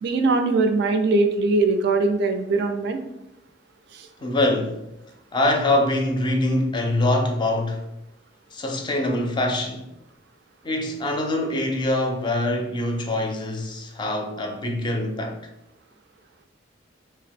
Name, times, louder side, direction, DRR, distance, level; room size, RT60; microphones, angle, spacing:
voice 1, 0.0-3.0 3.9-4.1, right 3 dB, 65° right, 0.4 m, -21 dB
voice 2, 4.2-4.8 5.3-7.8 8.5-9.9 10.6-15.4, left 1 dB, 25° left, 0.4 m, -24 dB
2.7 x 2.1 x 3.5 m
head